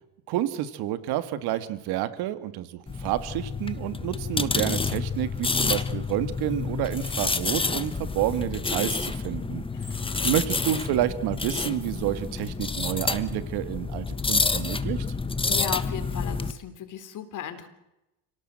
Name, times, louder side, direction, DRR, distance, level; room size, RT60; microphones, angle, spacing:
voice 1, 0.3-9.6 10.2-15.1, right 13 dB, 70° right, 12 dB, 2.2 m, -29 dB
sound 1, 2.9-16.5, left 4 dB, 15° left, 1.4 m, -29 dB
voice 2, 9.7-10.4 15.4-17.7, left 9 dB, 50° left, 10 dB, 3.6 m, -36 dB
30.0 x 18.0 x 7.8 m, 0.92 s
cardioid pair, 120°, 40 cm